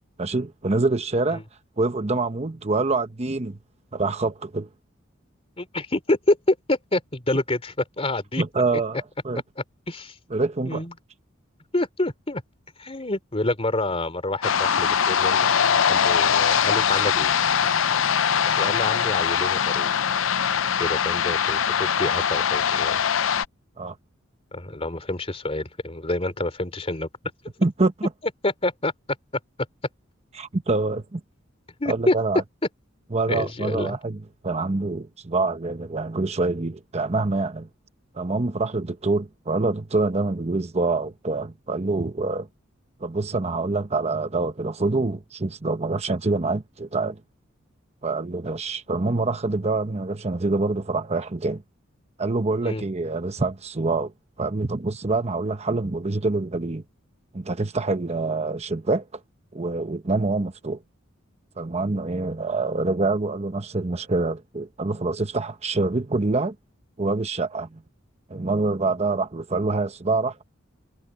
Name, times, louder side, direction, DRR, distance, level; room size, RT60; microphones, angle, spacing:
voice 1, 0.2-1.4 1.8-3.6 3.9-4.7 8.4-9.4 10.3-10.8 23.8-24.0 27.6-28.1 30.3-31.2 31.9-32.4 33.1-37.7 38.1-42.5 43.0-47.2 48.0-51.6 52.2-54.1 54.4-56.8 57.3-59.0 59.5-60.8 61.6-66.5 67.0-67.8 68.3-70.4, right 3 dB, 35° right, 0.9 m, -25 dB
voice 2, 5.6-8.4 9.9-10.1 10.7-10.9 11.7-12.4 12.8-15.4 15.9-17.3 18.4-19.9 20.8-23.0 24.5-27.1 28.4-28.9 31.8-32.1 33.3-34.0 52.6-52.8, left 2 dB, 30° left, 3.1 m, -27 dB
sound 1, 14.4-23.4, left 7 dB, 70° left, 0.6 m, -22 dB
head